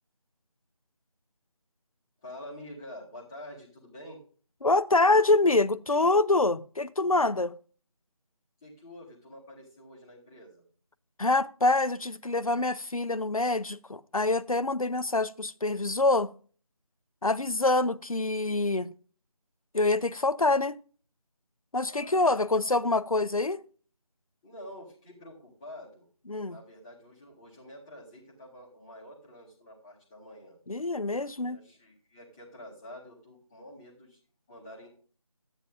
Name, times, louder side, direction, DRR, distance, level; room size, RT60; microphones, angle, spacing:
voice 1, 2.2-4.2 8.6-10.6 21.8-22.5 24.4-26.1 26.4-30.6 31.4-34.2 34.5-34.9, left 1 dB, 10° left, 1.6 m, -47 dB
voice 2, 4.6-7.5 11.2-16.3 17.2-18.9 19.7-20.8 21.7-23.6 26.3-26.6 30.7-31.6, left 2 dB, 70° left, 0.8 m, -25 dB
14.0 x 9.5 x 2.4 m
figure-of-eight pair, 165°, 19 cm